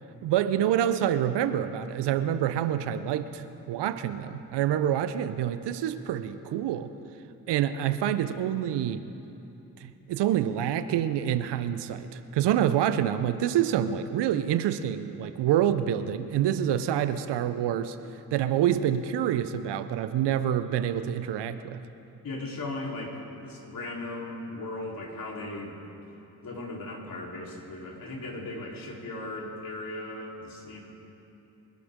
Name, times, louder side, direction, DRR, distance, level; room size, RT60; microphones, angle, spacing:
voice 1, 0.2-6.9 7.5-9.0 9.8-18.0 18.3-21.8, right 10 dB, 70° right, 12 dB, 0.8 m, -27 dB
voice 2, 22.2-25.8 26.4-30.8, left 2 dB, 50° left, -2 dB, 3.9 m, -37 dB
25.0 x 12.0 x 3.7 m, 2.9 s
hypercardioid pair, 45°, 43 cm